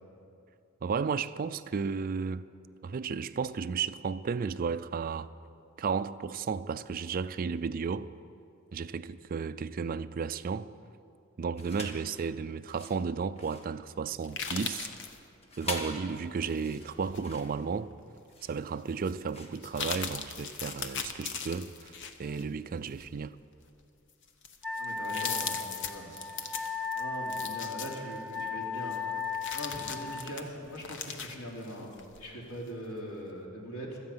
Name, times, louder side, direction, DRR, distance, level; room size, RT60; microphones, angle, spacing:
voice 1, 0.8-2.4 2.8-5.3 5.8-8.1 8.7-10.7 11.4-14.9 15.6-17.9 18.4-23.4, right 5 dB, 40° right, 0.4 m, -33 dB
sound 1, 11.5-12.1 12.6-20.4, left 1 dB, 30° left, 1.6 m, -43 dB
sound 2, 14.2-15.2 16.5-17.4 17.9-18.0 19.0-19.1 19.5-22.4 22.9-23.1 23.8-23.9 24.2-28.5 28.9-32.2 32.6-32.7, left 6 dB, 60° left, 1.0 m, -39 dB
Wind instrument woodwind instrument, 24.6-30.3, left 5 dB, ahead, 0.7 m, -36 dB
voice 2, 24.8-26.1 26.9-29.0 29.5-34.0, equal, 85° left, 3.2 m, -41 dB
17.0 x 13.0 x 5.6 m
head